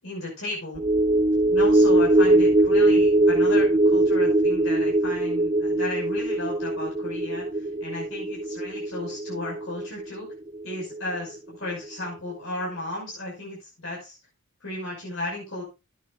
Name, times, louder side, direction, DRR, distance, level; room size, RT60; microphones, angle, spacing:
voice 1, 0.0-0.8 1.5-10.3 10.6-14.2 14.6-15.6, left 2 dB, 70° left, -5 dB, 6.1 m, -34 dB
sound 1, 0.7-11.4 11.7-11.8, right 2 dB, 20° right, 0.5 m, -22 dB
15.5 x 10.5 x 2.4 m, 0.27 s
head